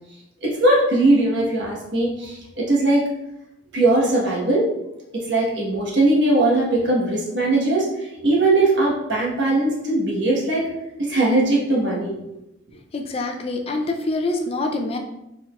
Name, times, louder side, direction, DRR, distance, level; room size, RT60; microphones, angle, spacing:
voice 1, 0.4-3.1 3.7-4.7 5.1-10.7 11.0-12.1, right 2 dB, 65° right, -4 dB, 1.2 m, -20 dB
voice 2, 12.9-15.0, left 2 dB, 30° left, 3 dB, 0.4 m, -25 dB
4.8 x 4.2 x 2.3 m, 0.89 s
head